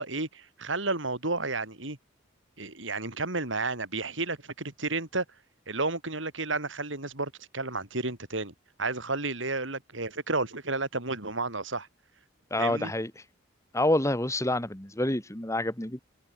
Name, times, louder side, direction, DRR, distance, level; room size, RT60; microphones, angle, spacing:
voice 1, 0.0-2.0 2.6-5.3 5.7-8.5 8.8-11.9 12.6-12.9, right 3 dB, 70° right, 5.1 m, -32 dB
voice 2, 12.5-13.2 13.7-16.0, left 1 dB, 15° left, 2.5 m, -28 dB
head